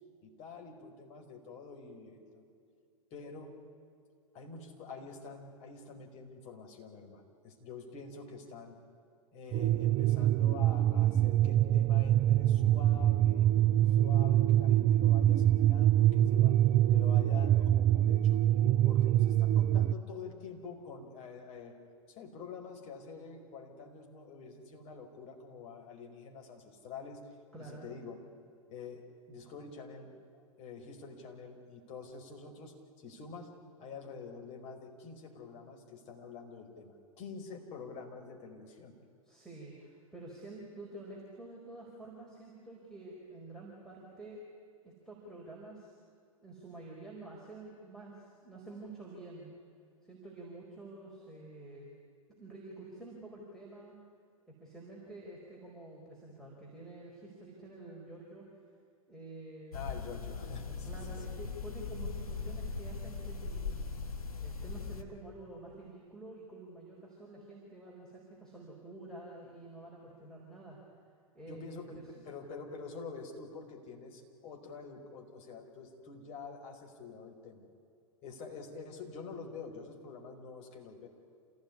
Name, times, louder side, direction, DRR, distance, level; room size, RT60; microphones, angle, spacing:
voice 1, 0.2-2.4 3.1-3.5 4.3-8.7 9.3-13.5 14.0-16.6 16.9-18.4 18.8-21.8 22.1-27.2 27.6-28.2 28.7-33.5 33.8-38.9 59.7-61.2 71.5-77.6 78.2-81.1, left 5 dB, 35° left, 2 dB, 5.0 m, -47 dB
sound 1, 9.5-19.9, right 12 dB, 25° right, 0.5 m, -25 dB
voice 2, 27.5-27.9 39.2-44.4 44.8-45.9 46.4-49.5 50.0-51.9 52.4-53.9 54.6-58.5 59.1-59.9 60.8-63.8 64.4-70.8 71.3-72.0, right 2 dB, 5° left, -4 dB, 4.8 m, -49 dB
sound 2, 59.7-65.0, left 4 dB, 85° left, 1.7 m, -39 dB
27.5 x 17.5 x 9.9 m, 2.4 s
figure-of-eight pair, 105°, 18 cm